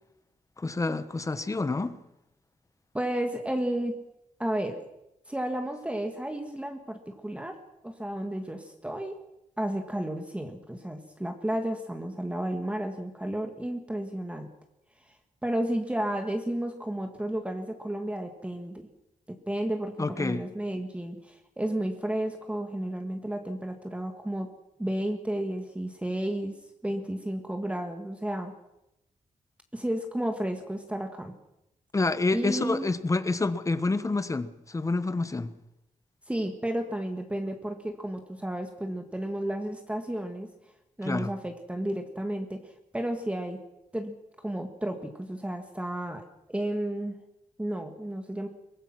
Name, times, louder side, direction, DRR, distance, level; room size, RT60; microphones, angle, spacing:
voice 1, 0.6-2.0 20.0-20.5 31.9-35.5 41.0-41.3, left 3 dB, 25° left, 1.2 m, -28 dB
voice 2, 2.9-4.0 4.4-4.8 5.3-7.6 7.8-9.1 9.6-14.5 15.4-18.9 19.3-24.5 24.8-26.5 26.8-28.5 29.7-31.3 32.3-32.9 36.3-40.5 41.0-43.6 43.9-47.2 47.6-48.5, right 1 dB, 10° right, 1.7 m, -32 dB
23.0 x 20.5 x 6.1 m
wide cardioid pair, 125°, 13 cm